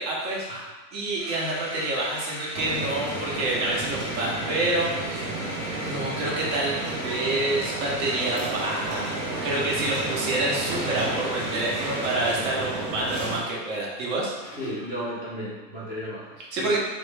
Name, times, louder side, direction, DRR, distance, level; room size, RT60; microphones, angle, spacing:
voice 1, 0.0-0.5 0.9-5.4 5.8-14.3 16.5-16.8, right 2 dB, 55° right, -3 dB, 1.0 m, -28 dB
sound 1, 1.2-15.0, left 1 dB, 10° left, 0.7 m, -38 dB
sound 2, 2.5-13.4, right 2 dB, 80° right, 0.9 m, -32 dB
voice 2, 14.6-16.8, equal, 15° right, -8 dB, 0.3 m, -34 dB
3.0 x 2.1 x 3.2 m, 1.2 s
supercardioid pair, 140°, 48 cm